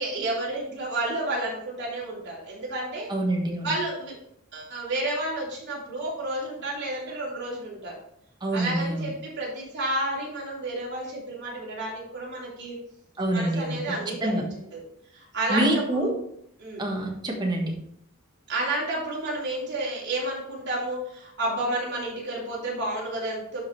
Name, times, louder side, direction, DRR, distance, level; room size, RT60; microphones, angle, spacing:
voice 1, 0.0-3.1 3.6-4.1 4.5-7.9 8.5-12.8 13.3-14.8 15.1-16.1 16.6-16.8 18.5-23.6, right 1 dB, 55° right, -5 dB, 3.3 m, -31 dB
voice 2, 3.1-3.7 8.4-9.1 13.2-13.8 14.2-14.4 15.5-16.1 16.8-17.7, right 1 dB, 20° right, 0 dB, 1.5 m, -26 dB
11.5 x 4.9 x 3.3 m, 0.72 s
head